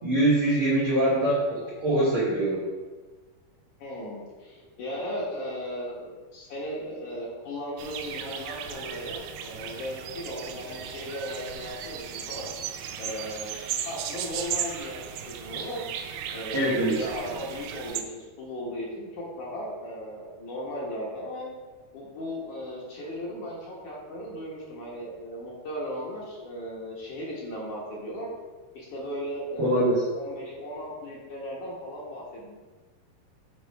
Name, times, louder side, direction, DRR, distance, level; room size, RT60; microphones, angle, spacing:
voice 1, 0.0-2.6 16.5-17.0 29.6-30.0, right 1 dB, 60° right, -8 dB, 1.4 m, -23 dB
voice 2, 3.8-12.5 13.0-13.5 13.8-14.9 15.4-15.9 16.3-21.5 21.9-28.3 28.7-32.5, equal, 60° left, -4 dB, 2.3 m, -36 dB
sound 1, 7.8-18.0, right 9 dB, 90° right, 1.9 m, -36 dB
8.2 x 4.5 x 4.6 m, 1.3 s
omnidirectional pair, 4.5 m